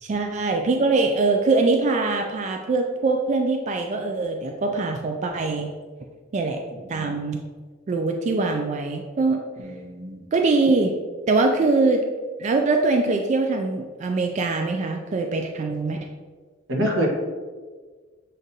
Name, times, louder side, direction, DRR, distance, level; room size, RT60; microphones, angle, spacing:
voice 1, 0.0-5.7 6.3-6.6 6.9-7.4 7.9-9.4 10.3-10.9 11.3-12.0 12.4-16.0, right 3 dB, 35° right, 3 dB, 0.3 m, -22 dB
voice 2, 6.7-7.1 9.6-10.2 16.7-17.1, equal, 90° right, -1 dB, 1.0 m, -27 dB
7.3 x 2.6 x 2.6 m, 1.5 s
head